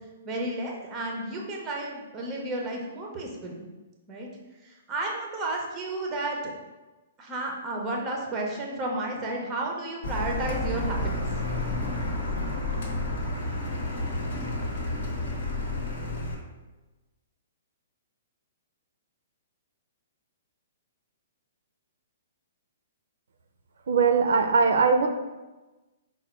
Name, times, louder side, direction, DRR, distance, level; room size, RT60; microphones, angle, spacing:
voice 1, 0.2-3.5 4.1-4.3 4.6-6.6 7.2-11.3, right 2 dB, 15° right, 0 dB, 0.5 m, -32 dB
Car, 10.0-16.3, left 2 dB, 65° left, 1.0 m, -30 dB
voice 2, 23.9-25.1, right 5 dB, 70° right, 6 dB, 0.4 m, -20 dB
4.8 x 2.1 x 4.3 m, 1.1 s
hypercardioid pair, 175°, 0 cm